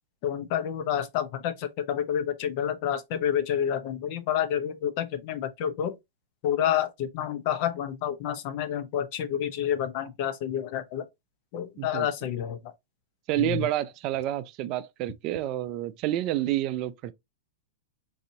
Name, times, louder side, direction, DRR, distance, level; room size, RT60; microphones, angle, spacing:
voice 1, 0.2-5.9 6.4-11.1 11.5-12.7 13.4-13.7, left 9 dB, 50° left, 0.7 m, -29 dB
voice 2, 13.3-17.1, right 13 dB, 45° right, 0.4 m, -29 dB
4.0 x 2.7 x 2.7 m
hypercardioid pair, 120°, 0 cm